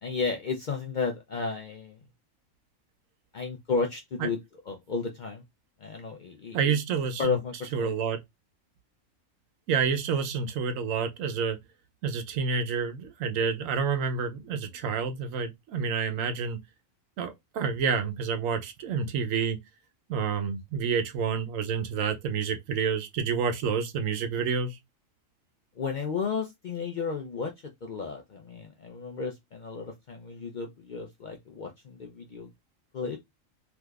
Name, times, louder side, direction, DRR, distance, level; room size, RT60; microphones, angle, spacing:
voice 1, 0.0-2.0 3.3-4.4 4.7-5.4 5.8-6.7 7.2-7.9 25.8-27.5 27.8-32.5 32.9-33.2, left 5 dB, 65° left, 0.4 m, -33 dB
voice 2, 6.5-7.4 7.7-8.2 9.7-11.6 12.0-16.6 17.2-19.6 20.1-24.8, right 6 dB, 85° right, 1.0 m, -29 dB
3.4 x 2.9 x 2.3 m
omnidirectional pair, 1.4 m